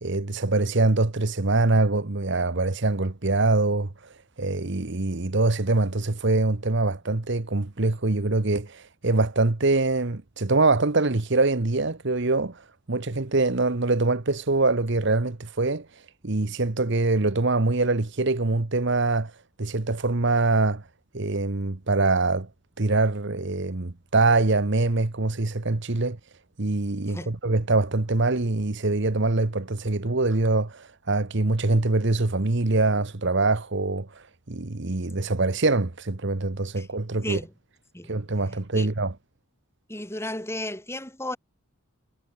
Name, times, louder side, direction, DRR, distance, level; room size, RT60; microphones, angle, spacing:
voice 1, 0.0-3.9 4.4-12.6 12.9-15.9 16.2-19.3 19.6-20.8 21.1-22.5 22.8-26.2 26.6-37.4 38.1-39.1, right 3 dB, 55° right, 1.2 m, -24 dB
voice 2, 37.2-37.5 37.9-38.9 39.9-41.4, left 1 dB, 10° left, 6.3 m, -35 dB
head